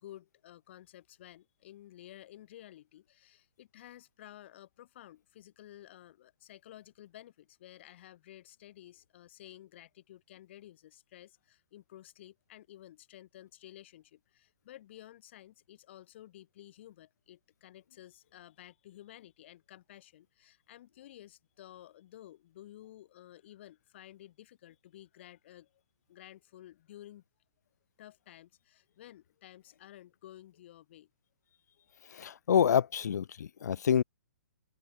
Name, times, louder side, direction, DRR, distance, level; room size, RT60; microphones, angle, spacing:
voice 1, 0.0-25.8 26.1-27.2 28.0-31.1, left 13 dB, 45° left, 3.1 m, -53 dB
voice 2, 32.1-34.0, left 8 dB, 85° left, 0.4 m, -27 dB
open air
hypercardioid pair, 165°, 9 cm